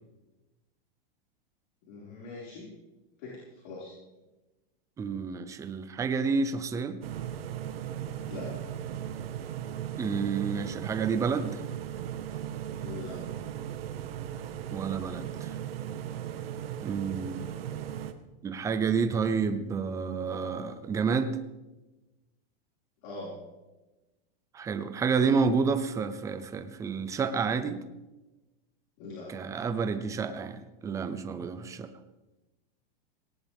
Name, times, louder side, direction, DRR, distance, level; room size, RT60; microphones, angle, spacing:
voice 1, 1.9-2.7 3.2-3.9 8.3-8.5 12.8-13.2 23.0-23.4 29.0-29.3, left 3 dB, 55° left, -5 dB, 5.5 m, -41 dB
voice 2, 5.0-7.0 10.0-11.6 14.7-15.6 16.8-17.4 18.4-21.4 24.5-27.8 29.3-31.9, right 5 dB, 10° right, 10 dB, 0.7 m, -29 dB
sound 1, 7.0-18.1, right 10 dB, 80° right, 1.5 m, -37 dB
18.5 x 18.0 x 3.6 m, 1.1 s
supercardioid pair, 160°, 29 cm